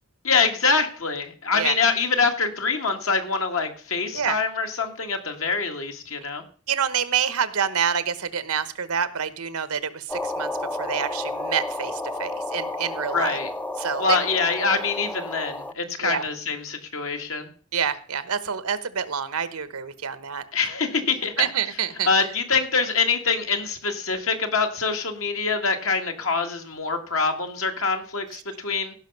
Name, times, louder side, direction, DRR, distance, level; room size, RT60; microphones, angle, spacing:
voice 1, 0.2-6.4 13.1-13.5 14.0-17.5 20.5-21.3 22.1-28.9, left 4 dB, 65° left, 5 dB, 1.8 m, -25 dB
voice 2, 6.7-10.5 10.8-13.4 13.8-14.3 16.0-16.2 17.7-20.4 21.4-22.1, right 7 dB, 80° right, 14 dB, 1.0 m, -27 dB
sound 1, 10.1-15.7, left 2 dB, 5° left, 0.5 m, -31 dB
16.5 x 5.8 x 5.4 m, 0.43 s
head